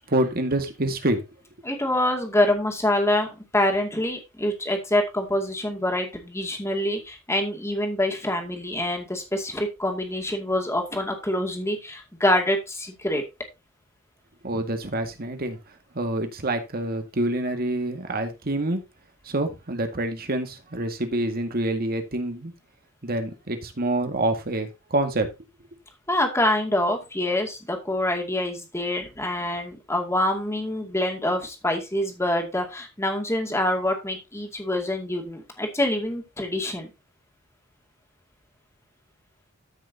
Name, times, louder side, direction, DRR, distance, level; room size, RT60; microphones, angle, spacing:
voice 1, 0.1-1.2 14.4-15.6 15.9-18.8 19.2-22.5 23.0-25.3, right 1 dB, 45° right, 1.9 m, -26 dB
voice 2, 1.6-3.3 3.5-13.2 26.1-36.9, left 1 dB, 15° left, 2.3 m, -25 dB
14.0 x 6.1 x 2.8 m
head